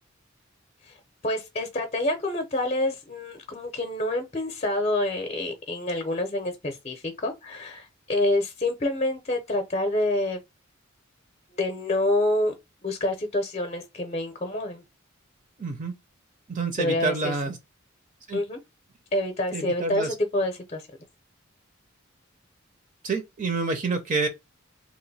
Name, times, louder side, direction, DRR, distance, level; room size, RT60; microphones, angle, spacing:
voice 1, 1.2-10.4 11.5-12.5 12.8-14.8 16.8-17.3 18.3-18.6 19.1-20.8, left 1 dB, 30° left, 0.6 m, -27 dB
voice 2, 15.6-15.9 16.5-17.6 18.3-18.4 19.5-20.1 23.0-24.3, right 3 dB, 40° right, 0.6 m, -28 dB
2.9 x 2.6 x 4.0 m
head